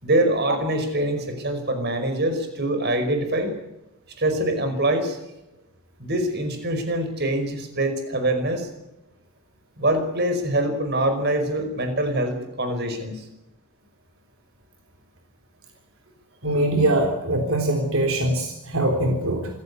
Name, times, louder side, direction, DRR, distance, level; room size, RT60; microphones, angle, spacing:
voice 1, 0.0-3.5 4.2-5.2 6.0-8.7 9.8-13.3, right 1 dB, 45° right, 7 dB, 5.2 m, -24 dB
voice 2, 16.4-19.5, right 1 dB, 70° right, 4 dB, 3.7 m, -22 dB
27.0 x 15.5 x 8.4 m, 0.93 s
head